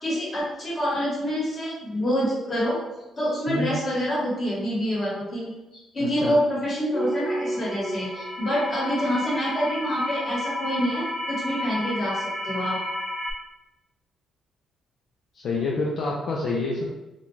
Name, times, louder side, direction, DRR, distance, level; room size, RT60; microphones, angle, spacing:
voice 1, 0.0-2.8 3.1-12.8, equal, 35° left, -6 dB, 1.3 m, -27 dB
sound 1, 6.9-13.3, equal, 5° left, 0.6 m, -31 dB
voice 2, 15.3-16.8, left 3 dB, 65° left, -3 dB, 0.4 m, -27 dB
2.5 x 2.2 x 3.1 m, 1.0 s
cardioid pair, 90°, 0 cm